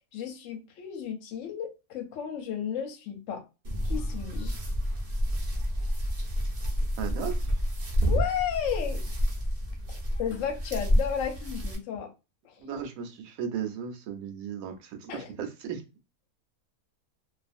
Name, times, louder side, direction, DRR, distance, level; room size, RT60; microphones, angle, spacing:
voice 1, 0.1-3.4 3.8-4.6 8.1-9.0 9.9-12.1 12.4-12.5 15.1-15.3, left 8 dB, 65° left, 0.9 m, -33 dB
sound 1, 3.6-11.7, equal, 45° right, 0.6 m, -29 dB
voice 2, 7.0-7.6 12.6-15.8, right 8 dB, 70° right, 0.9 m, -36 dB
2.5 x 2.4 x 2.5 m
omnidirectional pair, 1.7 m